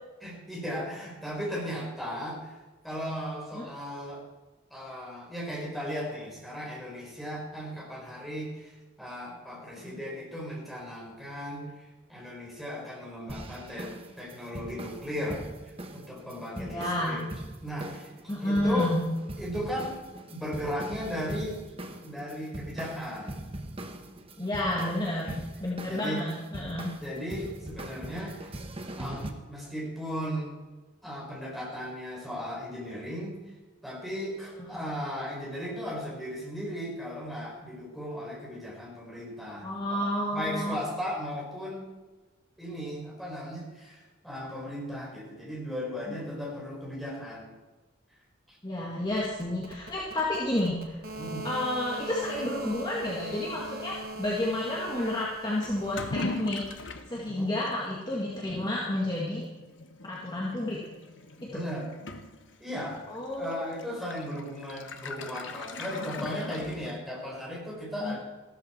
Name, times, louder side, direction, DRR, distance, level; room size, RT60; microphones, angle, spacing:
voice 1, 0.2-4.2 4.7-17.2 17.6-18.9 19.4-20.0 20.3-21.5 22.0-23.4 25.0-25.2 25.9-26.2 26.6-26.7 27.0-28.6 29.0-30.5 31.0-33.4 33.8-40.0 40.3-41.9 42.6-47.5 48.5-48.6 51.2-51.5 57.3-57.5 61.5-61.9 62.6-63.0 63.3-68.2, equal, ahead, -4 dB, 4.6 m, -36 dB
sound 1, 13.3-29.3, right 1 dB, 30° right, 1.1 m, -41 dB
voice 2, 16.6-17.1 18.3-19.0 24.4-26.9 34.6-34.8 39.6-40.8 46.1-46.2 48.6-51.0 51.4-56.6 57.1-59.4 60.0-60.8 61.4-61.6 63.1-63.8 65.9-66.2 68.0-68.2, left 1 dB, 20° left, -5 dB, 2.0 m, -31 dB
sound 2, 49.1-57.0, right 2 dB, 45° right, 1.7 m, -41 dB
Toilet flush / Liquid, 55.6-67.3, left 2 dB, 65° left, 1.1 m, -41 dB
14.5 x 13.0 x 4.5 m, 1.2 s
head